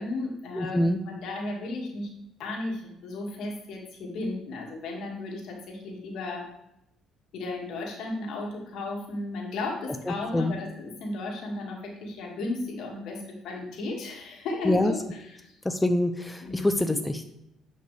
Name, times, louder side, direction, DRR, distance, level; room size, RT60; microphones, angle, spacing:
voice 1, 0.0-2.1 2.4-6.5 7.3-15.0 15.4-15.5 16.4-16.8, left 2 dB, 70° left, 0 dB, 2.1 m, -34 dB
voice 2, 0.5-1.0 10.0-10.6 14.6-14.9 15.6-17.2, left 1 dB, 10° left, 7 dB, 0.5 m, -25 dB
10.0 x 5.3 x 3.3 m, 0.83 s
supercardioid pair, 85°, 0 cm